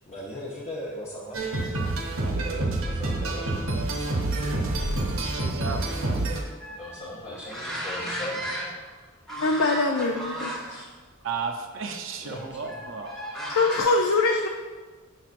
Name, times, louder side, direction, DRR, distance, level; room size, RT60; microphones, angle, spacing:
voice 1, 0.1-1.5 2.9-3.8 6.8-8.7 12.2-12.8, left 1 dB, 30° left, -5 dB, 0.7 m, -38 dB
sound 1, 1.3-6.4, right 2 dB, 90° right, 0.9 m, -27 dB
voice 2, 2.2-2.9 3.2-3.6 5.0-6.2 11.2-13.1, right 5 dB, 65° right, 5 dB, 0.5 m, -35 dB
sound 2, 6.6-9.0 9.3-10.8 11.2-11.4 12.7-13.8, equal, ahead, 1.0 m, -35 dB
voice 3, 9.3-10.9 13.5-14.5, left 3 dB, 85° left, 2 dB, 0.5 m, -24 dB
6.5 x 5.9 x 2.5 m, 1.4 s
head